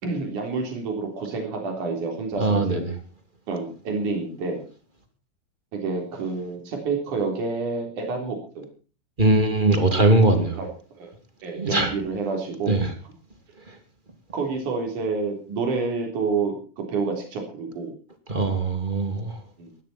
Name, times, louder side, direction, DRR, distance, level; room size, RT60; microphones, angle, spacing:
voice 1, 0.0-2.8 3.5-4.6 5.7-8.7 10.6-10.7 11.0-11.1 11.4-12.8 14.3-17.9 19.6-19.7, right 4 dB, 75° right, 5.3 m, -28 dB
voice 2, 2.4-2.8 9.2-10.6 11.6-11.9 12.7-12.9 18.3-19.3, right 2 dB, 15° right, 2.5 m, -20 dB
20.0 x 13.0 x 4.4 m
omnidirectional pair, 3.6 m